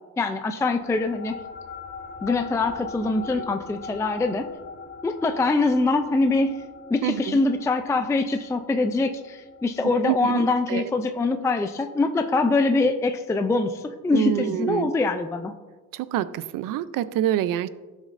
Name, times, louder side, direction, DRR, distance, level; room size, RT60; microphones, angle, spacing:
voice 1, 0.2-1.3 2.2-4.5 5.0-6.6 6.9-15.5, left 3 dB, 10° left, 7 dB, 0.3 m, -23 dB
sound 1, 0.8-11.6, left 5 dB, 45° left, 1.0 m, -41 dB
voice 2, 7.0-7.4 10.1-10.9 14.1-14.9 15.9-17.7, right 12 dB, 80° right, 15 dB, 0.5 m, -26 dB
15.5 x 6.4 x 2.5 m, 1.3 s
cardioid pair, 135°, 32 cm